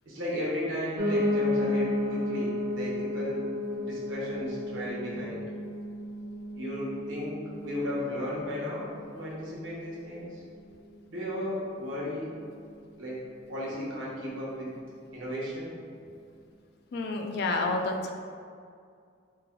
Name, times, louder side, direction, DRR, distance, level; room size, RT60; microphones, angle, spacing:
voice 1, 0.0-3.5 3.8-5.4 6.5-7.4 7.6-10.4 11.1-12.3 13.0-13.2 13.5-14.8 15.1-15.7, left 1 dB, 90° right, -6 dB, 1.0 m, -35 dB
Piano, 1.0-10.1 10.5-11.6 11.9-12.0 12.2-12.3 12.6-12.7 13.2-13.3, left 1 dB, 50° right, 0.6 m, -32 dB
voice 2, 16.9-18.1, left 2 dB, 55° left, 3 dB, 0.3 m, -29 dB
3.1 x 2.2 x 3.7 m, 2.3 s
head